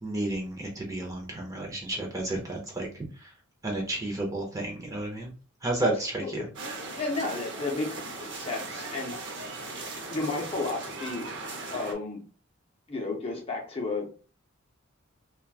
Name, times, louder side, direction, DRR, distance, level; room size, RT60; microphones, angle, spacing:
voice 1, 0.0-3.3 3.6-5.3 5.6-6.5, right 2 dB, 15° right, 0 dB, 0.6 m, -32 dB
sound 1, 6.5-11.9, right 2 dB, 60° right, 0.6 m, -38 dB
voice 2, 7.0-11.4 11.7-12.2 12.9-14.1, left 3 dB, 30° left, 1 dB, 0.6 m, -33 dB
3.0 x 2.2 x 2.3 m, 0.36 s
head